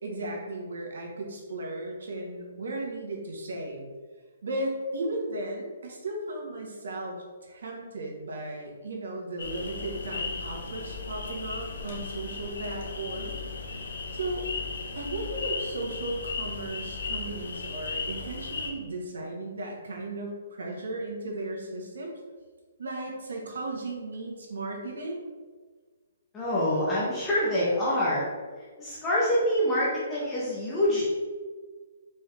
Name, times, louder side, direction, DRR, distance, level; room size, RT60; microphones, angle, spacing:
voice 1, 0.0-3.8 4.4-7.2 7.4-13.4 14.1-14.5 14.9-22.2 22.8-25.2, right 2 dB, 80° right, 0 dB, 1.3 m, -35 dB
sound 1, 9.4-18.7, left 4 dB, 75° left, 0.7 m, -36 dB
voice 2, 26.3-28.2 28.8-31.1, left 1 dB, 10° left, -8 dB, 0.8 m, -26 dB
4.4 x 3.4 x 3.3 m, 1.5 s
hypercardioid pair, 170°, 0 cm